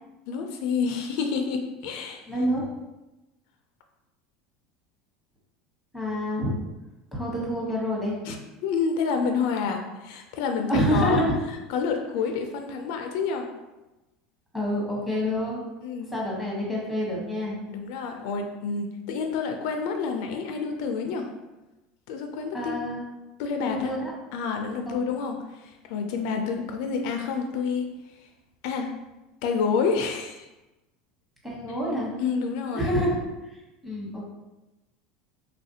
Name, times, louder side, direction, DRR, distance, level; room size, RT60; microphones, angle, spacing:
voice 1, 0.3-2.2 8.2-11.2 11.7-13.5 15.8-16.1 17.7-21.3 22.1-22.8 23.4-23.9 24.3-27.9 28.6-28.9 29.4-30.5 32.2-32.9, left 5 dB, 70° left, 4 dB, 0.3 m, -28 dB
voice 2, 2.3-2.6 5.9-6.5 7.1-8.1 10.7-11.4 14.5-15.7 16.1-17.5 22.5-23.0 23.6-24.1 24.8-25.0 31.4-32.1 32.7-33.2 33.8-34.3, equal, 5° right, -5 dB, 1.0 m, -27 dB
3.2 x 2.4 x 2.7 m, 1.0 s
supercardioid pair, 125°, 3 cm